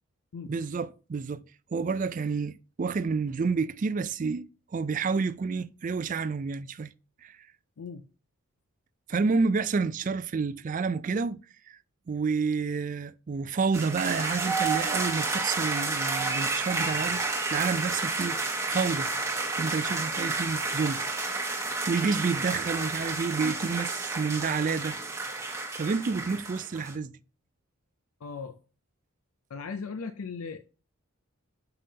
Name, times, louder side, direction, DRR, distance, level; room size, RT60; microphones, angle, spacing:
voice 1, 0.5-1.4 1.7-4.5 4.7-6.9 7.2-7.4 9.1-11.4 11.7-11.8 12.1-18.4 18.7-19.1 19.6-21.0 21.9-25.0 25.7-27.1, right 4 dB, 35° right, 0.3 m, -29 dB
sound 1, 13.7-27.0, right 3 dB, 15° right, 1.2 m, -31 dB
voice 2, 28.2-28.6 29.5-30.6, left 5 dB, 75° left, 0.5 m, -37 dB
6.7 x 5.4 x 2.8 m
head